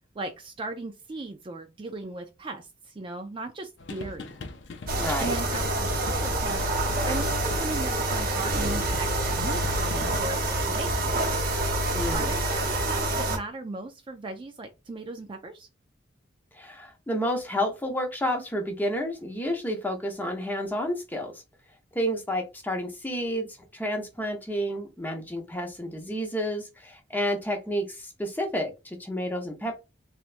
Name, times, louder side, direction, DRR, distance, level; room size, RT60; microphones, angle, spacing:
voice 1, 0.2-4.3 5.2-6.6 7.1-11.2 12.1-15.7, right 2 dB, 25° right, 0.3 m, -37 dB
sound 1, 3.8-10.7, left 3 dB, 65° left, 0.5 m, -41 dB
sound 2, 4.9-13.4, right 1 dB, 50° right, 0.8 m, -27 dB
voice 2, 5.0-5.4 11.9-12.3 16.5-21.4 21.9-23.5 23.7-29.8, equal, 10° left, 0.7 m, -30 dB
3.3 x 2.9 x 2.5 m
head